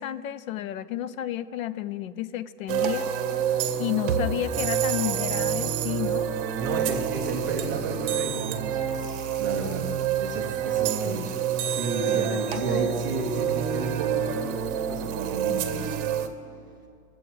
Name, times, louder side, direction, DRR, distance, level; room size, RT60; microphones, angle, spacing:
voice 1, 0.0-3.1 3.8-6.3 9.6-9.8 11.0-11.3 12.1-13.1, left 12 dB, 60° left, 16 dB, 0.6 m, -32 dB
sound 1, 2.7-16.3, right 8 dB, 35° right, 0.9 m, -28 dB
voice 2, 6.6-9.9 10.2-11.4 11.7-16.0, right 3 dB, 15° right, -1 dB, 0.3 m, -33 dB
20.0 x 7.7 x 4.6 m, 2.3 s
supercardioid pair, 155°, 48 cm